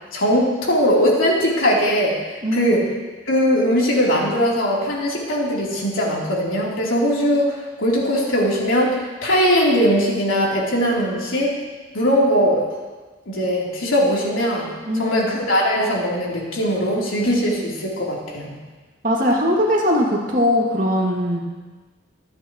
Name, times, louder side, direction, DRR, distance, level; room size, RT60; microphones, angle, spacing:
voice 1, 0.1-2.1 2.5-2.9 3.3-11.6 11.9-12.6 13.3-14.7 14.9-18.5, equal, 90° left, -5 dB, 3.9 m, -20 dB
voice 2, 2.4-2.8 14.9-15.3 19.0-21.4, equal, 40° right, -3 dB, 2.7 m, -20 dB
26.0 x 9.7 x 3.2 m, 1.3 s
head